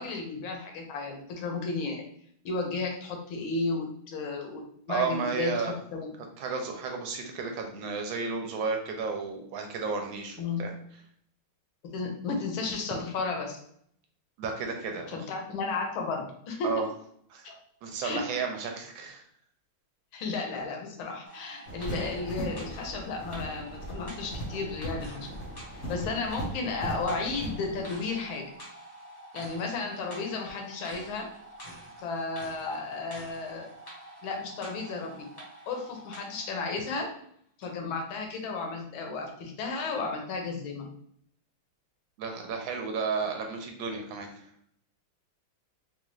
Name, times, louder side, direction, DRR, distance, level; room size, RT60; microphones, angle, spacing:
voice 1, 0.0-2.0 2.4-6.1 10.4-10.6 11.8-13.6 15.1-16.8 17.4-17.6 18.0-18.3 20.1-25.3 25.9-28.5 29.3-31.3 32.0-33.7 34.2-35.3 35.7-37.1 37.6-40.9, left 4 dB, 75° left, 2 dB, 1.5 m, -33 dB
voice 2, 4.9-5.7 6.4-10.7 14.4-15.3 16.6-16.9 17.3-17.5 17.8-19.2 42.2-44.5, right 5 dB, 75° right, 3 dB, 1.3 m, -33 dB
sound 1, 21.2-37.2 37.6-37.7, right 1 dB, 25° left, 0.9 m, -47 dB
sound 2, 21.7-27.8, right 1 dB, 55° left, 0.8 m, -38 dB
4.0 x 2.4 x 3.1 m, 0.66 s
omnidirectional pair, 2.3 m